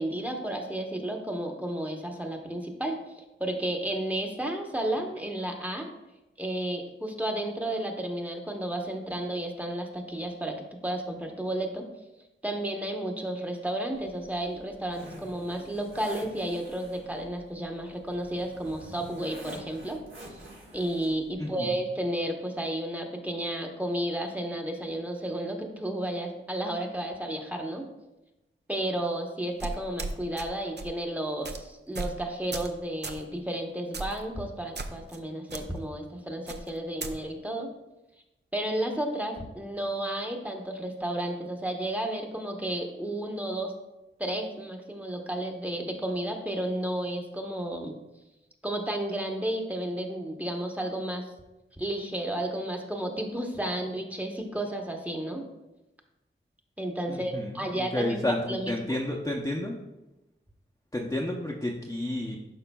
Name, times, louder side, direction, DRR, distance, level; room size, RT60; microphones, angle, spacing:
voice 1, 0.0-5.9 6.4-11.8 12.4-20.0 20.3-20.4 20.7-27.9 28.7-37.7 38.5-43.7 44.2-47.9 48.6-51.3 51.8-55.4 56.8-59.0, right 1 dB, 5° right, 2 dB, 0.9 m, -32 dB
Zipper (clothing), 13.9-21.3, equal, 70° right, 2.3 m, -47 dB
voice 2, 21.4-21.7 57.1-59.7 60.9-62.4, left 1 dB, 15° left, -2 dB, 0.6 m, -31 dB
sound 1, 29.6-30.5 30.8-31.0 31.4-31.6 31.9-32.2 32.5-32.7 33.0-33.2 33.9-34.2 34.7-35.2 35.5-35.6 36.5-37.1, right 3 dB, 55° right, 0.6 m, -35 dB
11.0 x 5.0 x 2.2 m, 0.97 s
wide cardioid pair, 90°, 21 cm